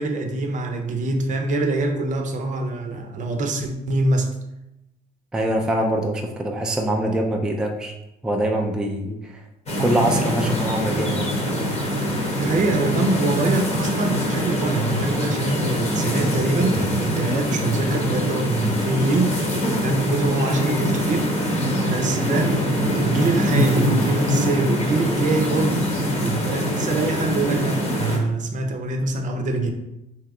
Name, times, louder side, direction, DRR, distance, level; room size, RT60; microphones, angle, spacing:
voice 1, 0.0-4.3 12.4-25.7 26.1-29.7, right 2 dB, 50° right, 5 dB, 0.6 m, -24 dB
voice 2, 5.3-7.9 8.2-9.4 9.8-11.3, right 1 dB, 5° right, 1 dB, 0.4 m, -24 dB
sound 1, 9.7-28.2, equal, 40° left, 1.0 m, -23 dB
3.5 x 2.8 x 3.6 m, 0.90 s
cardioid pair, 110°, 17 cm